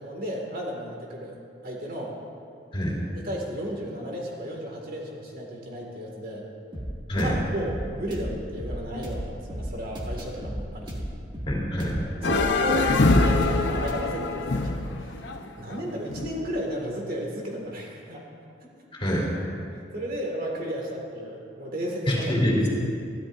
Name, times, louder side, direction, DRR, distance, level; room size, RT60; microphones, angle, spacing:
voice 1, 0.0-1.3 1.6-2.1 3.1-6.4 7.1-11.0 12.2-14.7 15.0-15.3 15.6-18.2 18.6-18.7 19.7-22.4, equal, 50° right, -1 dB, 2.0 m, -33 dB
sound 1, 6.7-14.0, equal, 25° right, 1.8 m, -34 dB
voice 2, 11.5-12.0 18.9-19.3 22.1-22.7, equal, 30° left, -5 dB, 3.3 m, -25 dB
sound 2, 12.2-16.5, left 2 dB, 65° left, 0.8 m, -24 dB
22.5 x 13.5 x 2.6 m, 2.4 s
head